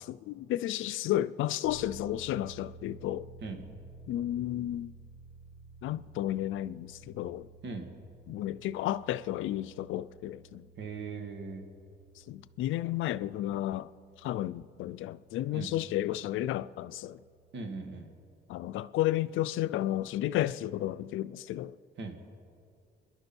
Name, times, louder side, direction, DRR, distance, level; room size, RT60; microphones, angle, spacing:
voice 1, 0.0-3.3 4.1-4.9 5.8-7.5 8.3-10.7 12.3-13.9 14.2-17.2 18.5-21.7, left 13 dB, 80° left, 0.5 m, -32 dB
sound 1, 1.6-18.0, right 3 dB, 80° right, 2.2 m, -54 dB
voice 2, 10.8-11.7 15.5-15.7 17.5-18.1 22.0-22.2, right 4 dB, 65° right, 2.1 m, -39 dB
28.0 x 11.0 x 4.5 m
cardioid pair, 90°, 20 cm